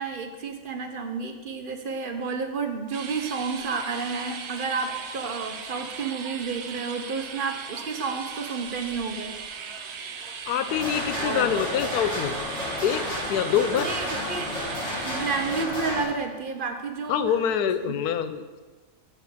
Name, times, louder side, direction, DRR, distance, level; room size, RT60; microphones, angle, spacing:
voice 1, 0.0-9.3 11.2-11.7 13.7-14.5 15.0-17.2 17.8-17.9, right 4 dB, 45° right, 5 dB, 0.8 m, -31 dB
sound 1, 2.9-15.7, right 6 dB, 85° right, 1.4 m, -38 dB
voice 2, 10.5-12.4 12.8-13.0 13.3-13.9 17.1-18.6, left 9 dB, 85° left, 11 dB, 1.2 m, -25 dB
sound 2, 10.7-16.1, left 1 dB, 50° left, 2.9 m, -31 dB
7.1 x 5.9 x 6.9 m, 1.3 s
omnidirectional pair, 1.6 m